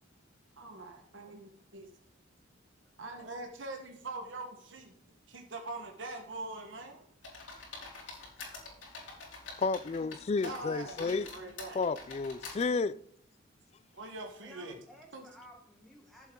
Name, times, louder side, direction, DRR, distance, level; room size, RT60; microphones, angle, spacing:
voice 1, 0.6-1.9 3.0-4.9 5.3-7.1 10.4-11.8 13.9-14.8 15.1-15.3, right 2 dB, 75° right, 1.3 m, -43 dB
sound 1, 7.2-10.2 10.4-12.6, left 3 dB, 85° left, 3.7 m, -46 dB
voice 2, 9.6-11.3 11.8-13.0, left 4 dB, 35° left, 0.3 m, -31 dB
voice 3, 14.4-16.3, equal, ahead, 1.1 m, -55 dB
14.5 x 7.3 x 3.7 m
head